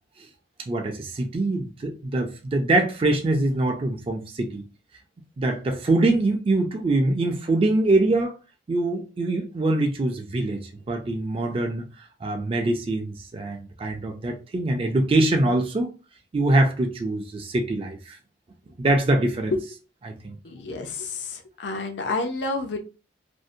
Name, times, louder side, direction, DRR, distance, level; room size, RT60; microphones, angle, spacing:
voice 1, 0.7-4.6 5.4-8.4 8.7-15.9 16.3-18.2 18.8-19.5 20.0-20.4, right 2 dB, 30° right, 0.4 m, -24 dB
voice 2, 20.4-22.8, left 3 dB, 85° left, 0.5 m, -30 dB
2.6 x 2.0 x 2.5 m
head